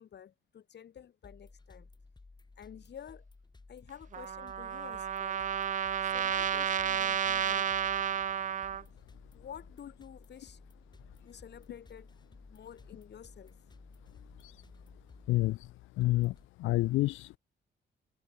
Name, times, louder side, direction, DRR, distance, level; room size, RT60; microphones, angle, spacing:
voice 1, 0.0-1.9 2.6-3.2 3.7-5.5 6.0-7.7 9.3-10.6 11.2-12.1 12.5-13.6, left 9 dB, 60° left, 6.0 m, -50 dB
sound 1, 1.2-16.5, left 3 dB, 20° left, 6.2 m, -56 dB
Trumpet, 4.1-8.8, right 9 dB, 40° right, 0.5 m, -31 dB
voice 2, 15.3-15.7 16.0-16.3 16.6-17.4, left 18 dB, 85° left, 0.5 m, -28 dB
cardioid pair, 90°, 20 cm